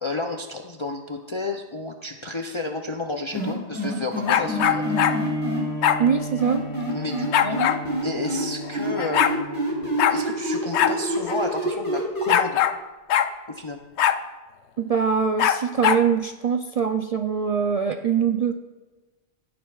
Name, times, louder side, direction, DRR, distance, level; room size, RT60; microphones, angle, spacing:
voice 1, 0.0-4.9 6.9-12.6 13.5-13.8, left 2 dB, 35° left, 3 dB, 0.5 m, -31 dB
sound 1, 3.3-5.6 6.4-8.4 8.7-12.3, equal, 20° left, 3.7 m, -27 dB
sound 2, 4.3-5.2 5.8-6.0 7.3-7.8 8.7-8.8 9.0-9.4 10.0-10.2 10.7-11.0 11.3-11.4 12.3-12.8 13.1-13.3 14.0-14.2 15.4-16.0, left 9 dB, 85° left, 0.9 m, -21 dB
Bowed string instrument, 4.3-10.0, equal, 30° right, 4.1 m, -32 dB
voice 2, 6.0-6.6 14.8-18.5, right 6 dB, 60° right, 6 dB, 0.4 m, -23 dB
15.5 x 10.0 x 2.4 m, 1.2 s
omnidirectional pair, 1.1 m